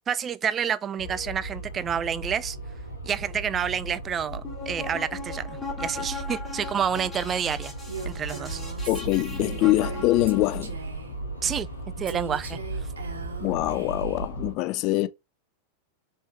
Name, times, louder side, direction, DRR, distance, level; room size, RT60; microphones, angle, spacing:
voice 1, 0.1-2.6 3.0-7.7 8.1-8.6 11.4-11.7 12.0-12.6, right 8 dB, 25° right, 0.4 m, -29 dB
sound 1, 1.0-14.5, right 2 dB, 80° left, 1.4 m, -36 dB
sound 2, 4.3-10.6, left 4 dB, 10° left, 2.3 m, -39 dB
Female speech woman speaking, 7.9-11.2 12.1-14.3, right 5 dB, 70° right, 1.1 m, -40 dB
voice 2, 8.9-10.7 13.4-15.1, left 18 dB, 40° left, 0.4 m, -24 dB
5.3 x 3.2 x 2.9 m
figure-of-eight pair, 90°, 0 cm